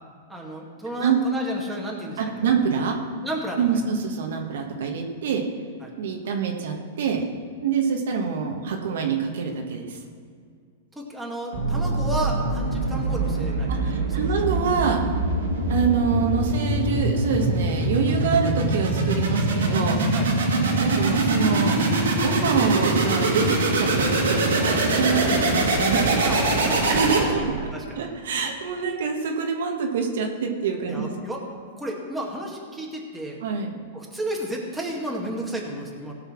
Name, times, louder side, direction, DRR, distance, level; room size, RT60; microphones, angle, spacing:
voice 1, 0.3-2.5 3.2-3.6 5.8-5.9 11.0-14.3 20.1-20.3 26.2-28.0 30.9-31.4 31.8-33.4 33.9-36.1, right 1 dB, 5° right, -2 dB, 2.1 m, -32 dB
voice 2, 2.2-3.0 3.6-5.4 6.0-7.2 7.6-10.0 13.7-15.0 15.7-20.0 20.8-21.8 22.1-26.2 26.9-27.7 27.9-31.1 33.4-33.8, right 6 dB, 75° right, 2 dB, 1.5 m, -25 dB
low pitch layer of uplifting sweep oscillating, 11.5-27.6, right 2 dB, 90° right, 2.3 m, -23 dB
16.5 x 5.7 x 6.0 m, 2.1 s
hypercardioid pair, 130°, 0 cm